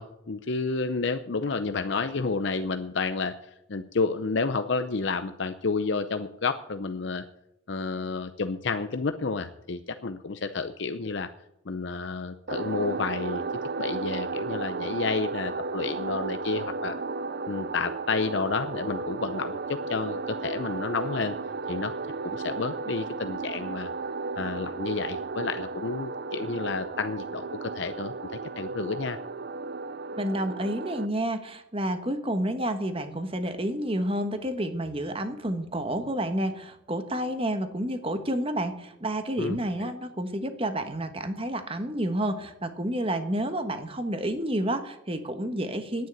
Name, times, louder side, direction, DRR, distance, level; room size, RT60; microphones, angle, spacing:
voice 1, 0.0-7.2 7.7-11.3 11.7-13.4 13.8-17.0 17.5-21.4 21.7-21.9 22.2-23.9 24.4-29.2 39.4-39.6, left 4 dB, 60° left, 8 dB, 0.6 m, -30 dB
sound 1, 12.5-31.1, right 4 dB, 50° right, 0.5 m, -34 dB
voice 2, 30.1-46.1, right 1 dB, 30° right, 8 dB, 1.3 m, -30 dB
10.5 x 9.3 x 9.1 m, 0.83 s
head